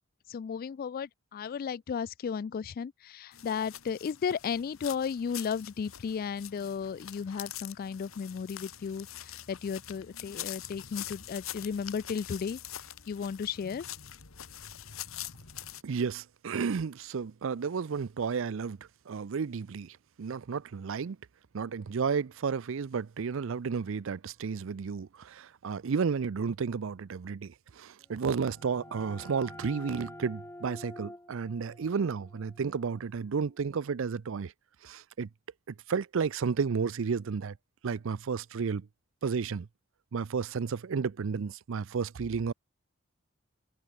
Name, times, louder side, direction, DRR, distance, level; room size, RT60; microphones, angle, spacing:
voice 1, 0.3-12.6 13.1-13.8, left 6 dB, 45° left, 0.3 m, -34 dB
sound 1, 3.3-15.8, left 11 dB, 90° left, 2.0 m, -44 dB
voice 2, 15.8-18.8 19.1-21.2 21.5-34.5 34.8-35.3 35.7-37.6 37.8-38.9 39.2-39.7 40.1-42.5, right 5 dB, 70° right, 0.5 m, -32 dB
sound 2, 28.1-33.6, left 1 dB, 15° left, 4.6 m, -49 dB
open air
head